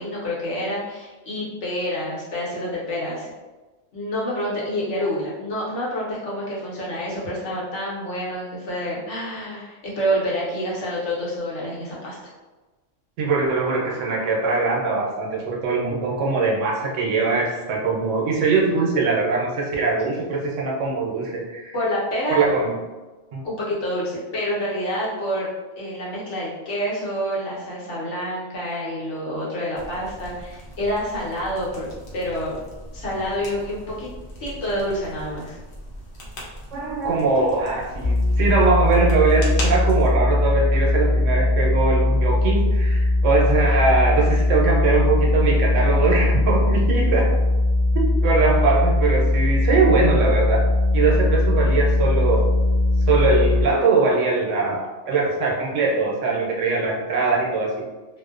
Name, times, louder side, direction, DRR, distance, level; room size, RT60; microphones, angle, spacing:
voice 1, 0.0-3.3 3.9-12.2 21.7-22.4 23.4-25.5 25.8-31.9 32.1-32.6 32.9-34.1 34.4-35.6, equal, 70° left, -6 dB, 1.1 m, -28 dB
voice 2, 13.2-21.7 22.3-22.7 23.3-23.4 36.7-47.3 47.9-50.6 50.9-52.5 53.1-57.7, right 3 dB, 80° right, -2 dB, 0.9 m, -21 dB
sound 1, 29.7-40.1, equal, 55° left, 0.7 m, -39 dB
sound 2, 38.0-53.6, left 1 dB, 5° left, 0.4 m, -20 dB
2.5 x 2.1 x 2.4 m, 1.2 s
omnidirectional pair, 1.3 m